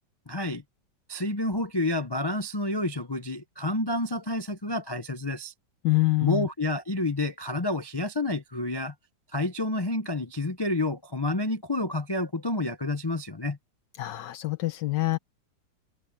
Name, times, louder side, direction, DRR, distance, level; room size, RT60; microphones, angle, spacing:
voice 1, 0.3-0.6 1.1-5.5 6.2-8.9 9.3-13.6, left 2 dB, 35° left, 0.4 m, -29 dB
voice 2, 5.8-6.5 14.0-15.2, left 20 dB, 80° left, 1.4 m, -25 dB
omnidirectional pair, 2.0 m